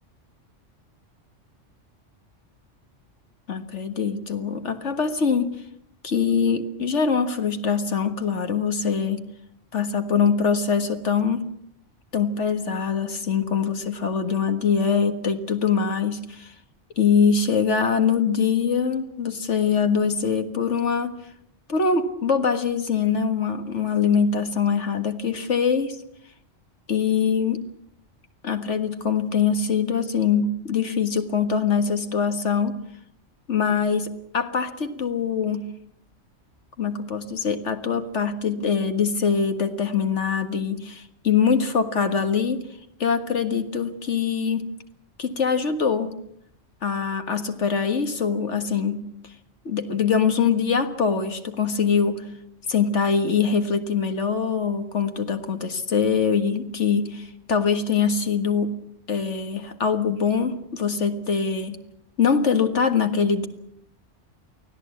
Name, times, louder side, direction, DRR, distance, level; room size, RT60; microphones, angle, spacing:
voice 1, 3.5-5.5 6.0-9.2 9.7-11.5 12.1-16.5 17.0-21.2 21.7-26.0 26.9-27.6 28.4-32.8 33.5-35.6 36.8-42.7 43.0-44.7 45.2-46.1 46.8-49.0 49.7-52.2 52.7-58.8 59.1-61.8 62.2-63.5, left 6 dB, 70° left, 8 dB, 2.0 m, -23 dB
24.0 x 16.0 x 8.5 m, 0.74 s
omnidirectional pair, 1.3 m